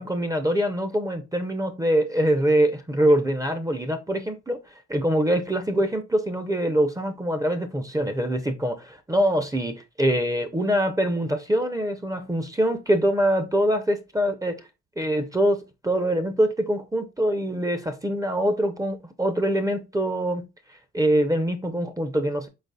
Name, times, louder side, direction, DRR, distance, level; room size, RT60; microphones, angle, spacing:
voice 1, 0.0-4.6 4.9-14.6 15.0-20.4 20.9-22.5, right 1 dB, 10° right, 0.6 m, -24 dB
4.4 x 4.1 x 2.3 m
cardioid pair, 90°, 30 cm